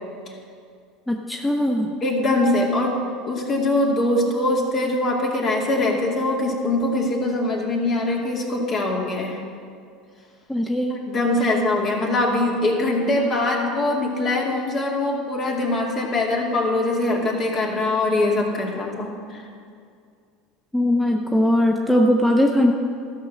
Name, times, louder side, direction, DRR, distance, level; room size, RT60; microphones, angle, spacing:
voice 1, 1.1-1.9 10.5-10.9 20.7-22.7, left 1 dB, 5° left, 1 dB, 0.9 m, -20 dB
voice 2, 2.0-2.9 3.2-9.4 10.9-19.4, left 2 dB, 45° left, -1 dB, 2.3 m, -22 dB
13.0 x 5.5 x 7.4 m, 2.3 s
hypercardioid pair, 90°, 0 cm